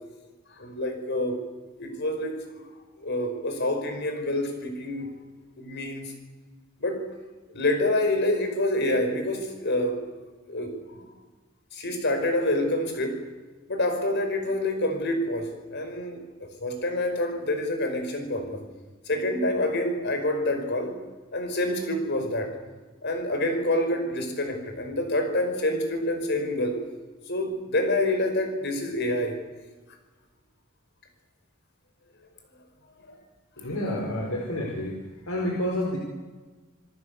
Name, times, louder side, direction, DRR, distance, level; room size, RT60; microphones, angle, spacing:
voice 1, 0.6-1.4 1.8-2.4 3.0-5.1 5.6-6.1 6.8-7.1 7.5-10.0 10.5-11.0 11.7-13.3 13.7-16.2 16.6-18.6 19.1-21.0 21.3-22.5 23.0-26.8 27.3-29.4 33.1-33.2, left 1 dB, 55° left, 6 dB, 5.5 m, -27 dB
voice 2, 33.6-35.0 35.3-36.0, left 1 dB, 85° left, -1 dB, 5.0 m, -29 dB
28.0 x 18.5 x 8.4 m, 1.3 s
head